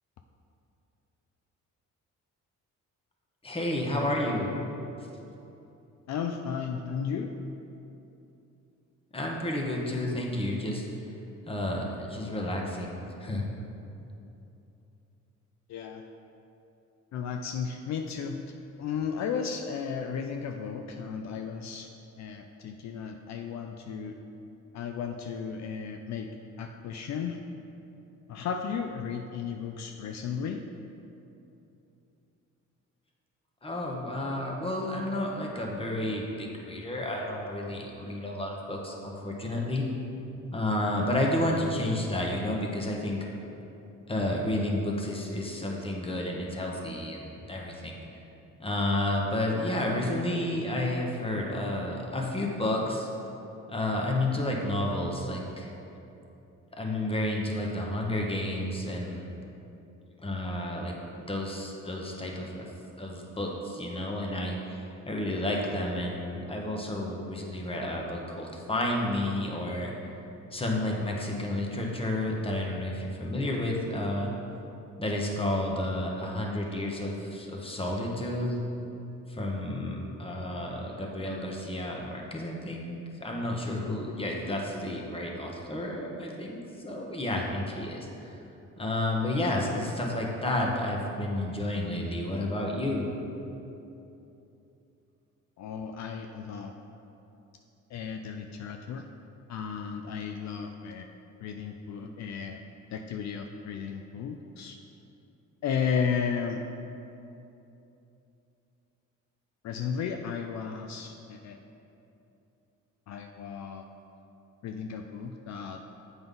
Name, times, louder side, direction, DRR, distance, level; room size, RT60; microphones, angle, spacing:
voice 1, 3.4-4.5 9.1-10.8 11.5-13.4 33.6-39.8 40.5-43.3 44.1-48.0 48.6-53.1 53.7-55.7 56.8-59.3 60.2-60.9 61.3-62.7 63.0-69.9 70.5-74.3 75.0-78.6 79.3-82.9 83.2-88.3 88.8-93.1, left 1 dB, 20° left, -1 dB, 1.1 m, -31 dB
voice 2, 6.1-7.3 15.7-16.0 17.1-18.5 18.8-21.9 22.2-24.1 24.7-26.3 26.6-27.4 28.3-30.6 95.6-96.7 97.9-99.0 99.5-101.1 101.4-102.6 102.9-104.8 105.6-106.6 109.6-111.6 113.1-113.9 114.6-115.8, left 6 dB, 65° left, 4 dB, 0.5 m, -34 dB
7.8 x 5.4 x 3.8 m, 2.9 s
cardioid pair, 90°, 30 cm